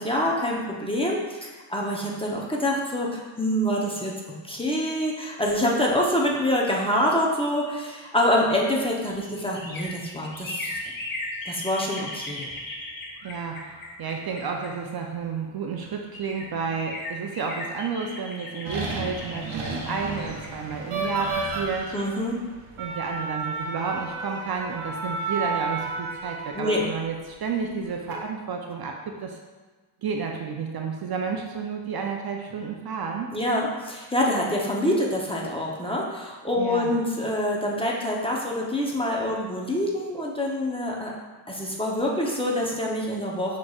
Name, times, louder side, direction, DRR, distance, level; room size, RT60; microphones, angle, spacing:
voice 1, 0.0-10.7 11.5-12.5 21.9-22.4 26.5-26.9 33.3-41.1 41.5-43.6, left 1 dB, 10° left, -3 dB, 0.7 m, -26 dB
sound 1, 8.4-15.3 15.8-15.9 16.1-21.9 22.2-22.3, left 2 dB, 45° left, 1.0 m, -38 dB
voice 2, 13.2-21.9 22.8-29.4 30.0-33.3 36.5-36.9, right 5 dB, 50° right, 1 dB, 0.5 m, -31 dB
sound 2, 18.6-27.1 27.8-28.1, right 3 dB, 85° right, 0.9 m, -32 dB
6.0 x 3.1 x 2.3 m, 1.3 s
cardioid pair, 85°, 49 cm